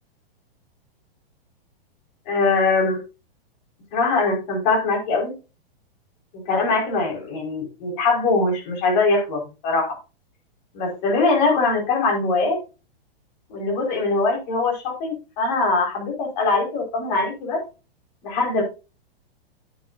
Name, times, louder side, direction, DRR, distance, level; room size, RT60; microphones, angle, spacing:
voice 1, 2.3-3.0 3.9-5.3 6.5-10.0 10.7-12.6 13.5-17.6 18.2-18.6, left 3 dB, 45° left, 2 dB, 5.2 m, -22 dB
10.5 x 9.1 x 2.7 m, 0.30 s
hypercardioid pair, 145°, 30 cm